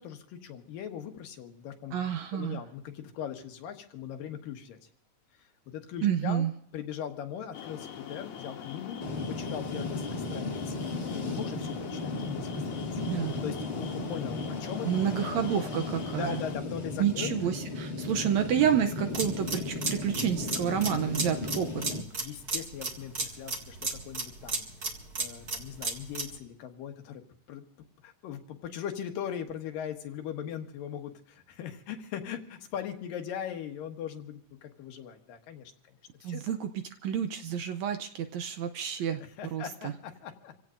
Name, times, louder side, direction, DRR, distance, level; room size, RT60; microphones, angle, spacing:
voice 1, 0.0-1.9 2.3-4.8 5.7-6.5 6.7-9.0 9.3-10.8 11.1-12.9 13.4-14.9 15.3-15.4 16.1-17.4 22.2-24.7 25.2-27.2 27.5-27.6 28.0-35.7 36.2-36.4 39.4-40.5, left 8 dB, 85° left, 5 dB, 3.1 m, -39 dB
voice 2, 1.9-2.6 6.0-6.5 13.0-13.4 14.8-16.4 17.0-21.8 36.2-39.9, right 9 dB, 75° right, 8 dB, 1.7 m, -29 dB
sound 1, 7.5-16.6, left 8 dB, 70° left, 2.7 m, -43 dB
sound 2, 9.0-22.0, left 2 dB, 30° left, 1.3 m, -35 dB
sound 3, 19.1-26.4, right 3 dB, 35° right, 2.1 m, -34 dB
27.5 x 16.5 x 2.5 m, 0.68 s
omnidirectional pair, 3.8 m